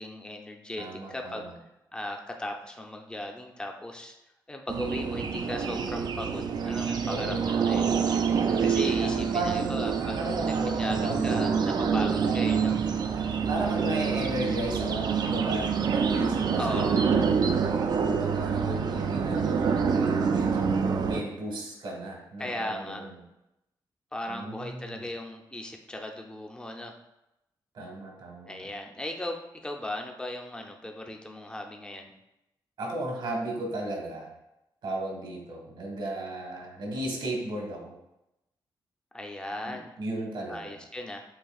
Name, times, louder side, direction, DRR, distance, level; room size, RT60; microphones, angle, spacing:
voice 1, 0.0-1.5 1.9-4.1 4.5-7.9 8.6-12.7 16.6-17.0 22.4-23.0 24.1-26.9 28.5-32.1 39.1-40.0 40.5-41.2, left 1 dB, 10° left, 2 dB, 0.6 m, -37 dB
voice 2, 0.8-1.5 7.0-7.8 9.2-9.8 10.2-11.6 12.2-12.3 13.5-17.3 18.0-23.2 24.3-25.0 27.7-28.6 32.8-34.3 34.8-37.9 39.7-40.8, right 1 dB, 75° right, -1 dB, 1.5 m, -35 dB
sound 1, 4.7-21.2, right 6 dB, 55° right, 0.4 m, -26 dB
7.7 x 2.7 x 2.4 m, 0.88 s
wide cardioid pair, 125°, 9 cm